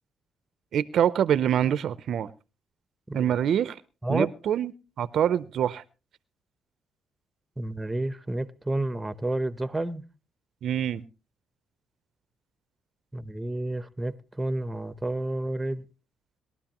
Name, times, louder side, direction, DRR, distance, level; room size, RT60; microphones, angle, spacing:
voice 1, 0.7-2.3 3.1-3.8 4.1-4.7 5.0-5.8 10.6-11.0, right 9 dB, 65° right, 16 dB, 0.6 m, -25 dB
voice 2, 7.6-10.0 13.1-15.8, right 1 dB, 10° right, 13 dB, 0.8 m, -30 dB
21.0 x 12.0 x 2.9 m, 0.32 s
cardioid pair, 90°, 0 cm